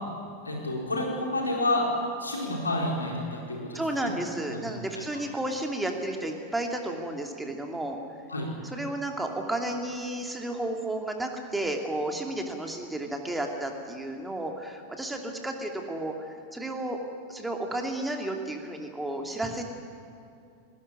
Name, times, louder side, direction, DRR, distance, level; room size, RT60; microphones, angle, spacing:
voice 1, 0.4-1.9 2.2-5.0 8.3-8.5, left 1 dB, 80° left, -1 dB, 4.5 m, -30 dB
voice 2, 3.7-8.0 8.7-17.0 17.3-19.6, right 1 dB, 5° right, 2 dB, 2.9 m, -32 dB
19.5 x 19.5 x 9.9 m, 2.5 s
figure-of-eight pair, 90°, 0 cm